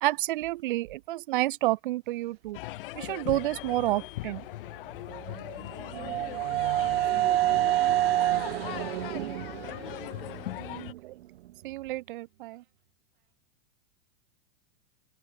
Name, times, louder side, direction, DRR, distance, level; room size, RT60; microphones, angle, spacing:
voice 1, 0.0-2.6 2.9-4.5 11.0-11.2 11.6-12.6, right 17 dB, 55° right, 0.5 m, -29 dB
sound 1, 2.5-10.9, left 17 dB, 60° left, 0.6 m, -40 dB
sound 2, 5.1-11.0, right 15 dB, 70° right, 0.9 m, -28 dB
voice 2, 6.7-8.5 9.7-10.9, left 13 dB, 90° left, 1.8 m, -52 dB
supercardioid pair, 170°, 31 cm